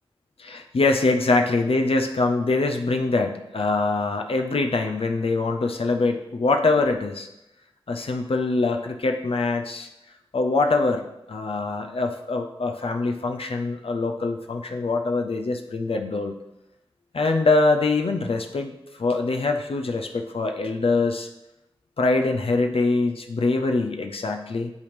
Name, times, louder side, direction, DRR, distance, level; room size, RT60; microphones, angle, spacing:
voice 1, 0.4-7.3 7.9-9.9 10.3-16.3 17.1-21.3 22.0-24.7, left 3 dB, 70° left, 4 dB, 0.5 m, -24 dB
10.5 x 3.5 x 3.3 m, 0.90 s
wide cardioid pair, 50°, 10 cm